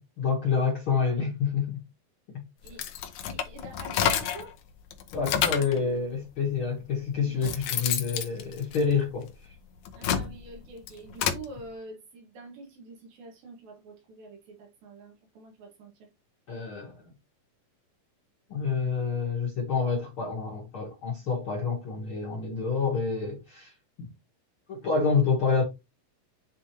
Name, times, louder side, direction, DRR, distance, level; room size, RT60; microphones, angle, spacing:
voice 1, 0.0-1.8 5.1-9.3 16.5-17.1 18.5-24.1 24.7-25.6, left 5 dB, 55° left, 1.6 m, -28 dB
sound 1, 2.7-4.5 4.9-5.8 6.6-6.7 7.2-9.3 9.8-11.5, left 9 dB, 80° left, 1.6 m, -29 dB
voice 2, 3.2-4.6 7.2-7.5 10.0-16.1, right 3 dB, 75° right, 3.7 m, -46 dB
9.7 x 3.8 x 3.0 m
omnidirectional pair, 4.2 m